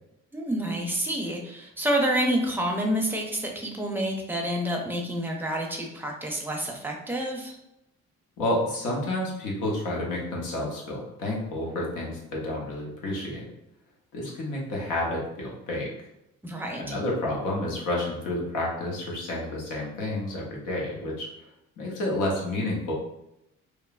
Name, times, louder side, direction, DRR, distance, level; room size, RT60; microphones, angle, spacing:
voice 1, 0.3-7.6 16.4-17.0, right 1 dB, 5° right, 0 dB, 0.5 m, -28 dB
voice 2, 8.4-13.5 14.1-15.9 16.8-21.3 21.8-22.9, left 1 dB, 90° left, -2 dB, 0.8 m, -30 dB
3.0 x 2.0 x 2.3 m, 0.83 s
cardioid pair, 90°, 30 cm